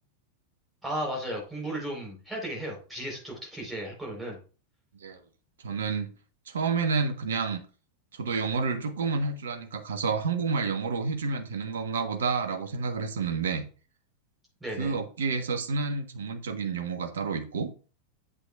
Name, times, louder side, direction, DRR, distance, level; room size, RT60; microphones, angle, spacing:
voice 1, 0.8-4.4 14.6-14.9, right 1 dB, 10° right, -1 dB, 4.2 m, -35 dB
voice 2, 5.6-6.1 6.5-7.6 8.1-13.7 14.8-17.7, right 4 dB, 65° right, 7 dB, 1.1 m, -29 dB
8.1 x 8.0 x 2.4 m, 0.37 s
figure-of-eight pair, 90°, 0 cm